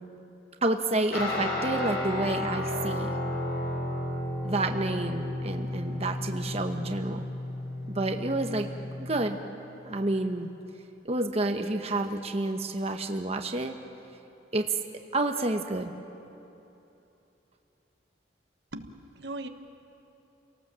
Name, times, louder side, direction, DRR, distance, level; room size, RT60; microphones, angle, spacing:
voice 1, 0.6-3.1 4.4-7.3 7.9-8.7 9.0-9.4 9.8-10.5 11.0-13.7 14.5-14.7 15.1-15.9, right 2 dB, 35° right, 5 dB, 1.1 m, -29 dB
Guitar, 1.1-9.3, left 1 dB, 65° left, 7.0 m, -33 dB
voice 2, 18.7-19.5, right 2 dB, 70° right, 7 dB, 1.2 m, -39 dB
28.5 x 18.5 x 7.5 m, 3.0 s
head